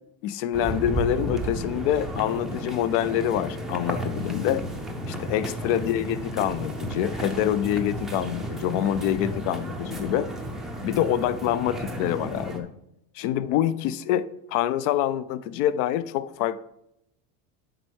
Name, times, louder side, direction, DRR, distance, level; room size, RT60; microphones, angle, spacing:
voice 1, 0.2-4.7 5.1-10.3 10.8-12.7 13.2-16.6, left 11 dB, 60° left, 0.6 m, -26 dB
sound 1, 0.5-12.6, right 1 dB, ahead, 0.5 m, -33 dB
7.7 x 5.4 x 4.5 m
cardioid pair, 160°, 43 cm